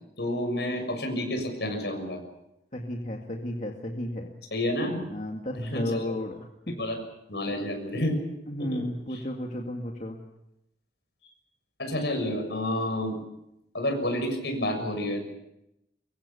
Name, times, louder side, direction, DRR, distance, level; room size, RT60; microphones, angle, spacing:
voice 1, 0.2-2.2 4.5-5.0 5.5-6.2 6.7-7.0 7.3-8.2 8.6-8.8 9.1-9.2 11.8-13.2 13.7-15.3, left 1 dB, 70° left, 5 dB, 6.7 m, -29 dB
voice 2, 2.7-4.3 5.1-6.5 8.5-10.2, left 1 dB, 40° left, 1 dB, 2.1 m, -33 dB
24.0 x 23.0 x 7.1 m, 0.86 s
head